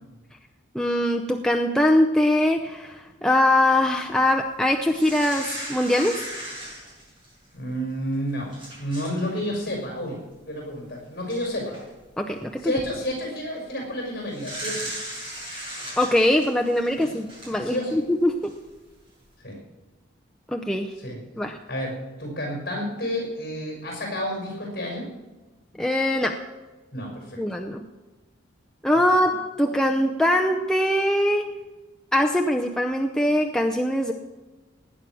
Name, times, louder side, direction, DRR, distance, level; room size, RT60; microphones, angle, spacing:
voice 1, 0.7-6.2 12.2-12.7 16.0-18.5 20.5-20.9 21.4-21.6 25.8-26.4 27.4-27.8 28.8-31.5 32.1-34.1, left 1 dB, 5° left, 2 dB, 0.6 m, -22 dB
sound 1, 4.9-7.5 8.1-8.2 8.5-9.2 9.5-9.7 10.8-10.9 11.3-11.8 12.5-12.8 14.3-18.0 18.4-18.5, right 1 dB, 25° right, 6.7 m, -37 dB
voice 2, 7.5-8.5 8.8-10.2 10.5-11.8 12.6-14.9 17.0-17.1 17.5-18.0 19.4-19.6 21.0-21.2 21.7-25.1 26.9-27.4, equal, 50° left, 0 dB, 5.8 m, -30 dB
18.5 x 9.3 x 6.2 m, 1.2 s
head